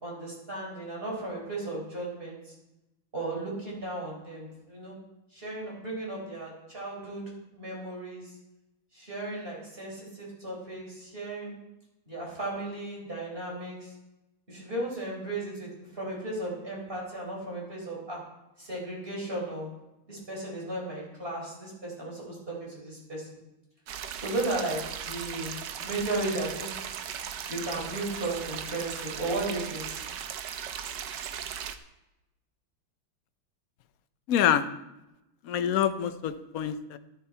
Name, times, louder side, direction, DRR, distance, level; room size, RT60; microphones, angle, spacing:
voice 1, 0.0-2.5 3.1-5.0 5.3-7.2 7.5-8.3 8.9-11.5 12.1-13.9 14.5-18.2 18.6-19.7 20.1-23.3 24.1-24.8 25.1-26.8 27.5-29.9, right 2 dB, 25° right, -3 dB, 5.1 m, -35 dB
sound 1, 23.9-31.8, right 8 dB, 65° right, 1.2 m, -37 dB
voice 2, 34.3-34.7 35.4-37.0, left 10 dB, 65° left, 10 dB, 0.9 m, -26 dB
13.0 x 12.0 x 4.5 m, 0.93 s
omnidirectional pair, 2.3 m